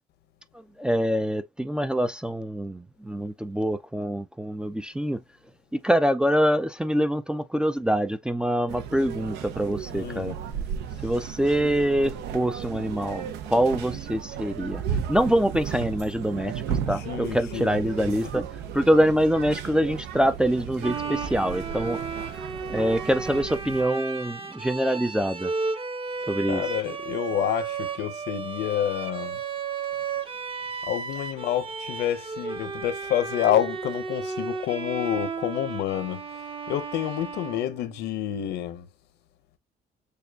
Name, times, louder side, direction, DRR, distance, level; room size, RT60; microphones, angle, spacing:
voice 1, 0.8-5.2 5.7-10.3 11.0-14.8 15.1-18.5 18.7-22.0 22.7-25.5 26.3-26.6, equal, 5° right, 0.3 m, -25 dB
sound 1, 8.7-23.8, right 8 dB, 85° right, 0.7 m, -34 dB
voice 2, 9.9-10.4 16.9-18.2 26.5-29.4 30.9-36.2 36.7-38.9, left 11 dB, 80° left, 0.8 m, -28 dB
Bowed string instrument, 20.8-38.2, right 5 dB, 30° right, 0.8 m, -34 dB
6.7 x 2.3 x 2.3 m
cardioid pair, 110°, 17 cm